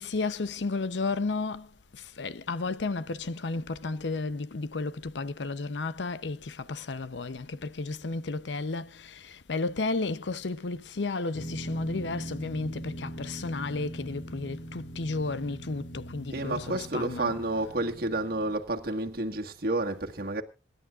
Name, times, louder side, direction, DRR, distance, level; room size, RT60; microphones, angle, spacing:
voice 1, 0.0-1.7 2.0-17.4, left 3 dB, 90° left, 0.7 m, -33 dB
sound 1, 11.3-18.5, equal, 50° left, 2.5 m, -41 dB
voice 2, 16.3-20.4, right 2 dB, 60° right, 1.7 m, -30 dB
26.5 x 11.5 x 2.4 m
head